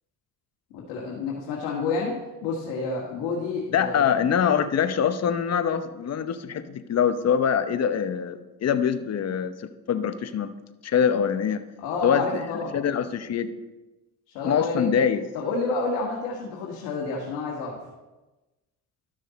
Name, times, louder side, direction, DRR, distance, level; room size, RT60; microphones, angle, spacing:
voice 1, 0.7-2.1 2.4-4.1 11.8-12.8 14.3-15.0 15.3-17.8, left 3 dB, 80° left, -3 dB, 1.7 m, -29 dB
voice 2, 3.7-10.5 10.8-11.6 12.0-12.5 12.7-13.5 14.4-15.2, left 8 dB, 40° left, 10 dB, 0.8 m, -24 dB
12.5 x 6.4 x 4.1 m, 1.1 s
supercardioid pair, 85°, 39 cm